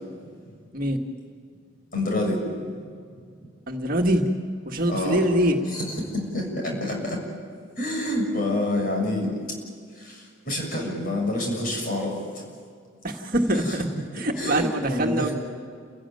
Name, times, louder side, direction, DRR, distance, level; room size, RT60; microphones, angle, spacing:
voice 1, 1.9-2.4 4.9-5.2 5.7-7.2 7.8-9.3 10.0-12.4 13.6-14.1 14.4-15.3, left 1 dB, 40° left, 0 dB, 6.9 m, -27 dB
voice 2, 3.7-4.2 4.7-5.6 13.0-13.8 14.2-15.3, right 1 dB, 45° right, 2 dB, 1.9 m, -24 dB
29.5 x 16.5 x 9.3 m, 2.1 s
head